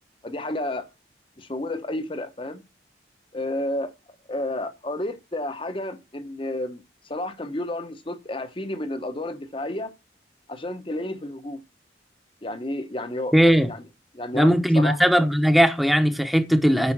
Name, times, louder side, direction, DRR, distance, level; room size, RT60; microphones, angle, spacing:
voice 1, 0.2-0.8 1.4-2.6 3.3-3.9 4.3-6.8 7.1-9.9 10.5-11.6 12.4-13.3 13.7-13.8 14.1-15.0, left 1 dB, 25° left, 0.9 m, -31 dB
voice 2, 13.3-13.7 14.3-16.9, equal, ahead, 0.9 m, -18 dB
9.6 x 5.6 x 6.1 m
head